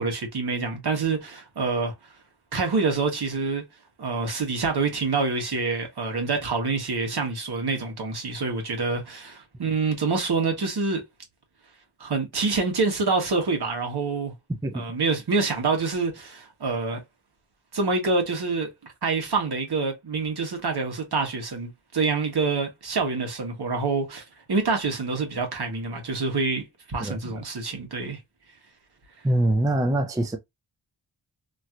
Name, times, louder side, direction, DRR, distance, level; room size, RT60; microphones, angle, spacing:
voice 1, 0.0-1.9 2.5-3.6 4.0-11.0 12.0-14.3 14.7-17.0 17.7-18.7 19.0-28.2, right 4 dB, 55° right, 1.3 m, -26 dB
voice 2, 14.6-14.9 27.0-27.3 29.2-30.4, right 1 dB, 10° right, 0.4 m, -24 dB
3.0 x 2.8 x 2.4 m
wide cardioid pair, 95°, 45 cm